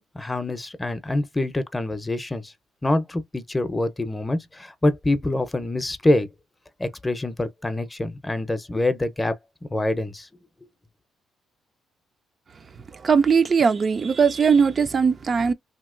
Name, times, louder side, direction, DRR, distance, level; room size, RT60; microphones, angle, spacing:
voice 1, 0.1-2.5 2.8-6.3 6.8-9.4 9.7-10.3, left 2 dB, 15° left, 0.6 m, -25 dB
voice 2, 13.0-15.5, right 6 dB, 40° right, 0.3 m, -19 dB
2.9 x 2.8 x 2.4 m
cardioid pair, 90°, 0 cm